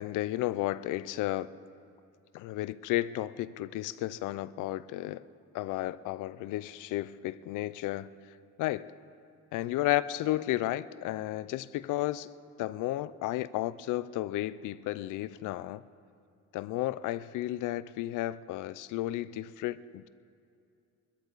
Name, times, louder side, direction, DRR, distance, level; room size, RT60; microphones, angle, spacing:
voice 1, 0.0-1.5 2.3-5.2 5.5-8.1 8.6-8.9 9.5-12.3 12.6-15.8 16.5-20.1, left 15 dB, 90° left, 18 dB, 0.5 m, -33 dB
24.0 x 13.0 x 4.0 m, 2.6 s
cardioid pair, 90°, 30 cm